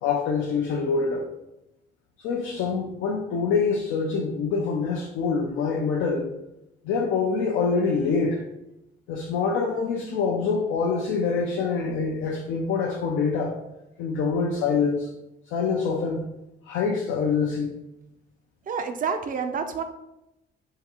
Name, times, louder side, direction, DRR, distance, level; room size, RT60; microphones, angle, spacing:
voice 1, 0.0-1.2 2.2-6.3 6.8-8.4 9.1-13.6 14.0-15.1 15.5-16.3 16.6-17.8, left 5 dB, 90° left, 0 dB, 0.4 m, -25 dB
voice 2, 18.7-19.8, right 6 dB, 45° right, 8 dB, 0.4 m, -28 dB
3.6 x 2.3 x 2.9 m, 0.90 s
cardioid pair, 90°, 20 cm